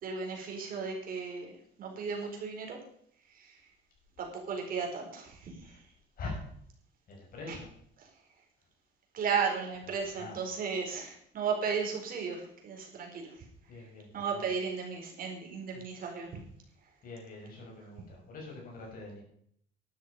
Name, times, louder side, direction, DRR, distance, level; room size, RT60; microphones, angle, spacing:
voice 1, 0.0-1.5 1.8-2.8 3.3-3.6 4.2-5.8 7.5-7.6 8.0-8.1 9.1-13.5 14.1-16.4, right 6 dB, 50° right, 1 dB, 4.6 m, -35 dB
voice 2, 7.1-7.7 9.8-10.4 11.0-11.1 13.7-14.6 15.7-15.8 17.0-19.2, left 3 dB, 50° left, 0 dB, 6.8 m, -44 dB
12.0 x 11.5 x 5.5 m, 0.66 s
cardioid pair, 150°, 19 cm